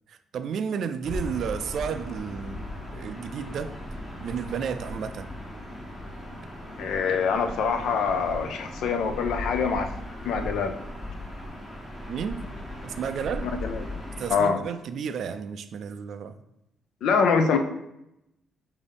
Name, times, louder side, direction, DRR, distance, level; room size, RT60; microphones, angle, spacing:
voice 1, 0.1-3.8 4.2-5.3 12.1-12.5 12.8-13.5 14.2-16.4, right 7 dB, 65° right, 10 dB, 0.3 m, -32 dB
Gull seagull / Ocean, 1.0-14.4, left 1 dB, 25° left, 1.2 m, -37 dB
voice 2, 6.8-9.9 10.2-10.7 13.6-13.9 14.3-14.6 17.0-17.6, left 5 dB, 80° left, 7 dB, 0.5 m, -24 dB
5.1 x 2.7 x 3.4 m, 0.86 s
cardioid pair, 90°, 0 cm